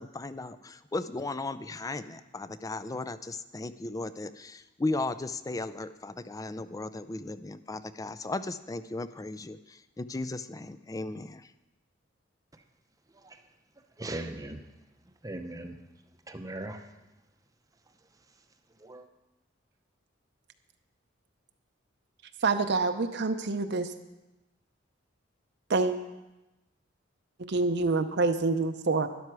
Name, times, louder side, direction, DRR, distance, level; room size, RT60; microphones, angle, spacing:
voice 1, 0.0-11.5, left 2 dB, 20° left, 13 dB, 0.4 m, -36 dB
voice 2, 14.0-14.6 15.2-15.7 16.3-16.8 18.8-19.0, right 1 dB, 20° right, 7 dB, 0.7 m, -38 dB
voice 3, 22.4-23.9 25.7-25.9 27.5-29.1, right 3 dB, 60° right, 7 dB, 0.7 m, -26 dB
12.0 x 11.0 x 4.7 m, 1.0 s
head